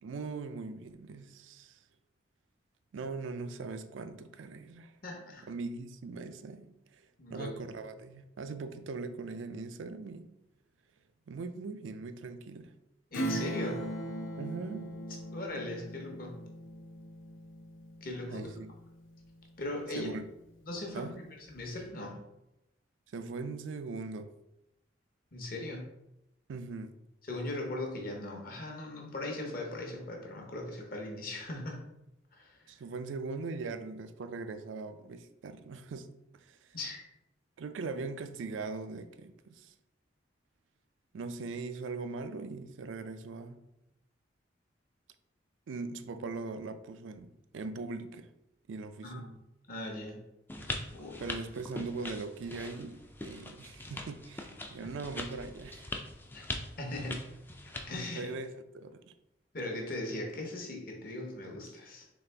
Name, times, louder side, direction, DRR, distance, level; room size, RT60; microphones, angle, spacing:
voice 1, 0.0-1.8 2.9-4.9 5.5-7.0 7.3-10.3 11.3-12.7 14.4-15.0 18.3-18.7 19.9-20.3 20.9-21.2 23.1-24.3 26.5-27.0 32.7-36.7 37.6-39.7 41.1-43.6 45.7-48.3 48.7-49.3 51.2-56.1 58.2-59.0, right 3 dB, 85° right, 0.4 m, -40 dB
voice 2, 5.0-5.4 7.2-7.6 13.1-13.8 15.3-16.4 18.0-18.5 19.6-20.1 20.6-21.2 21.5-22.2 25.3-25.9 27.2-31.9 32.3-32.6 36.7-37.0 49.0-49.3 49.7-50.2 50.9-51.3 54.8-54.9 56.3-56.4 56.8-57.3 57.9-58.3 59.5-62.1, left 1 dB, 50° left, 0.9 m, -39 dB
Acoustic guitar / Strum, 13.1-19.3 19.7-19.8, right 1 dB, 90° left, 0.6 m, -39 dB
sound 1, 50.5-58.0, left 2 dB, 10° left, 0.3 m, -42 dB
4.1 x 3.3 x 3.3 m
head